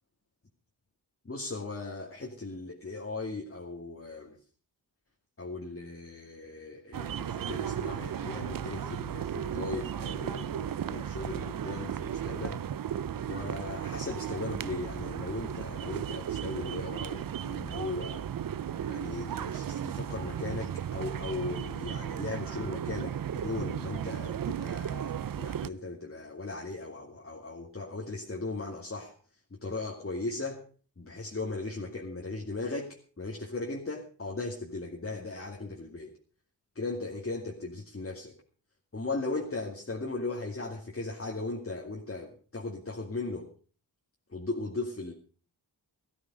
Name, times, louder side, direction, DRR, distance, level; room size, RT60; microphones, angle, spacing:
voice 1, 1.2-4.4 5.4-12.6 13.3-18.3 18.9-29.1 29.5-30.6 31.0-36.1 36.7-38.4 38.9-43.5 44.3-45.1, left 3 dB, 30° left, -1 dB, 2.4 m, -37 dB
sound 1, 6.9-25.7, right 9 dB, 55° right, 0.6 m, -35 dB
14.0 x 13.5 x 5.0 m, 0.40 s
cardioid pair, 60°, 41 cm